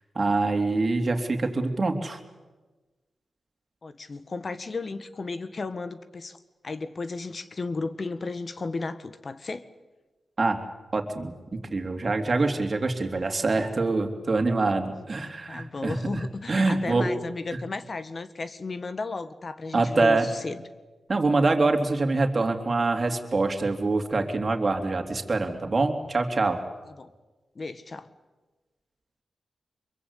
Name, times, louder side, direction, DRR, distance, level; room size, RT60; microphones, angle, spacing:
voice 1, 0.1-2.2 10.4-10.6 10.9-17.1 19.7-20.3 21.1-26.6, right 3 dB, 45° right, 4 dB, 3.2 m, -25 dB
voice 2, 3.8-6.4 6.6-9.7 14.9-20.6 26.8-27.1 27.5-28.1, left 3 dB, 50° left, 12 dB, 1.6 m, -34 dB
25.5 x 23.0 x 8.4 m, 1.2 s
cardioid pair, 65°, 0 cm